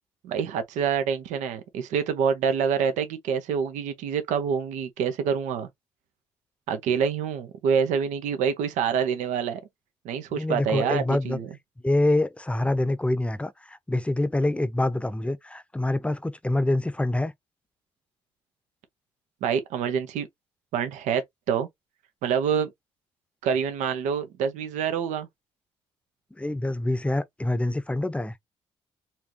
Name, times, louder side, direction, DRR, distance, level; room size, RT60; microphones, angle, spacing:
voice 1, 0.2-5.7 6.7-9.6 10.0-11.5 19.4-20.3 20.7-21.2 21.5-21.7 22.2-22.7 23.4-25.3, right 7 dB, 80° right, 0.8 m, -26 dB
voice 2, 10.3-11.4 11.8-17.3 26.4-28.3, left 1 dB, 10° left, 0.7 m, -26 dB
4.3 x 2.6 x 2.9 m
supercardioid pair, 55°, 12 cm